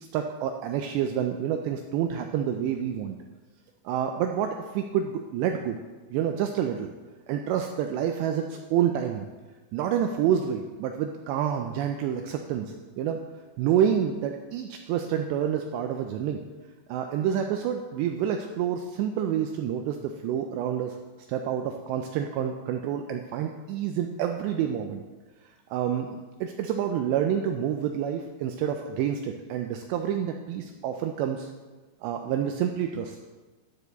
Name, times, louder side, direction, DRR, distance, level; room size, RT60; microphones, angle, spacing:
voice 1, 0.1-3.2 3.9-5.8 6.1-6.9 7.3-9.3 9.7-13.2 13.6-16.4 16.9-21.0 21.3-25.0 25.7-31.5 32.0-33.2, right 9 dB, 90° right, 4 dB, 2.4 m, -28 dB
12.0 x 9.1 x 4.0 m, 1.3 s
omnidirectional pair, 5.6 m